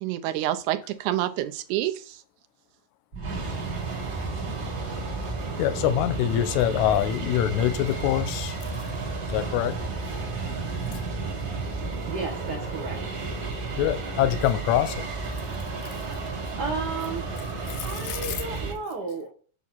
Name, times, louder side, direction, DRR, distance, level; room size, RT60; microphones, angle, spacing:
voice 1, 0.0-2.2, right 13 dB, 85° right, 9 dB, 2.1 m, -28 dB
sound 1, 3.1-18.7, right 3 dB, 40° right, 1.8 m, -32 dB
voice 2, 5.6-8.6 9.3-9.7 13.8-15.0 17.8-18.3, left 12 dB, 85° left, 11 dB, 2.0 m, -24 dB
voice 3, 12.0-13.0 16.3-17.3 17.8-19.3, right 4 dB, 65° right, 2 dB, 1.0 m, -33 dB
7.2 x 3.5 x 6.0 m, 0.41 s
omnidirectional pair, 3.4 m